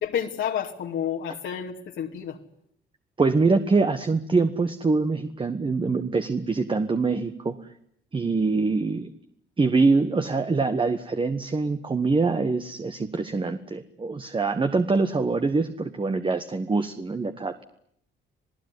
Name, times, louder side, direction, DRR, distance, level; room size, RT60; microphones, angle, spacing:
voice 1, 0.0-2.4, left 9 dB, 75° left, 2 dB, 2.6 m, -30 dB
voice 2, 3.2-7.5 8.1-9.1 9.6-17.6, right 3 dB, 25° right, 8 dB, 1.4 m, -24 dB
27.5 x 17.5 x 9.7 m, 0.70 s
cardioid pair, 90°, 20 cm